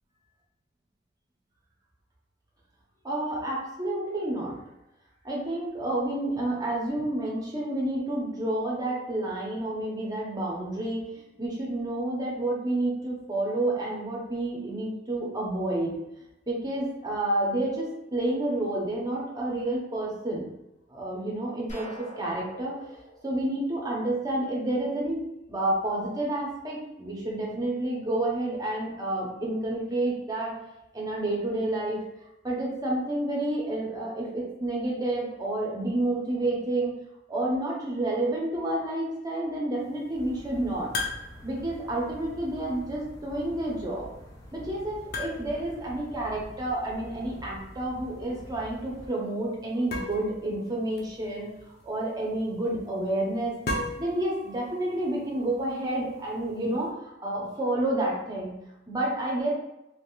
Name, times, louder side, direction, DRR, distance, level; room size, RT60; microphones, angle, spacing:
voice 1, 3.0-4.6 5.2-11.0 11.4-15.9 16.5-20.5 20.9-22.8 23.2-25.2 25.5-30.5 30.9-32.0 32.4-36.9 37.3-40.9 41.4-44.1 44.5-51.5 51.8-53.5 54.0-56.9 57.2-58.6 58.9-59.5, right 1 dB, 20° right, -3 dB, 0.8 m, -29 dB
sound 1, 21.7-24.5, equal, 40° left, 1.1 m, -45 dB
sound 2, 39.8-56.9, left 2 dB, 55° left, 0.7 m, -41 dB
sound 3, 40.2-49.1, equal, 20° left, 0.4 m, -47 dB
3.4 x 2.9 x 2.4 m, 0.91 s
head